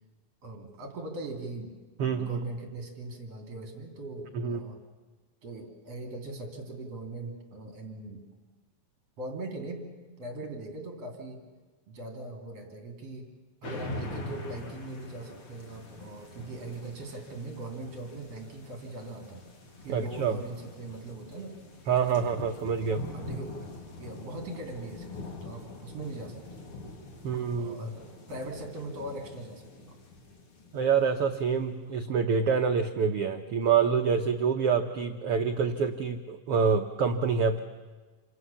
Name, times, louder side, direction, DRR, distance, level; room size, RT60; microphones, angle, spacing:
voice 1, 0.4-4.8 5.4-8.2 9.2-9.8 10.2-11.4 11.9-13.3 13.6-19.4 19.8-21.6 22.2-22.3 23.1-23.6 24.0-26.6 27.6-30.0, right 2 dB, 45° right, 4 dB, 3.9 m, -40 dB
voice 2, 2.0-2.4 4.3-4.7 19.9-20.4 21.9-23.1 27.2-27.9 30.7-37.6, right 6 dB, 85° right, 5 dB, 1.2 m, -27 dB
sound 1, 13.6-31.4, left 2 dB, 40° left, 3.0 m, -44 dB
28.0 x 26.5 x 7.2 m, 1.3 s
omnidirectional pair, 4.1 m